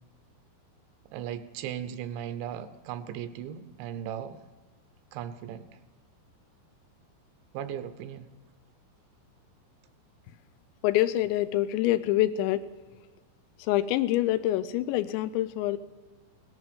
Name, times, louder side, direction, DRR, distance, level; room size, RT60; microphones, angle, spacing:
voice 1, 1.1-4.4 5.1-5.7 7.5-8.3, right 10 dB, 80° right, 11 dB, 3.1 m, -37 dB
voice 2, 10.8-12.7 13.6-15.8, left 14 dB, 85° left, 13 dB, 3.0 m, -26 dB
18.0 x 10.5 x 6.9 m, 1.3 s
omnidirectional pair, 5.2 m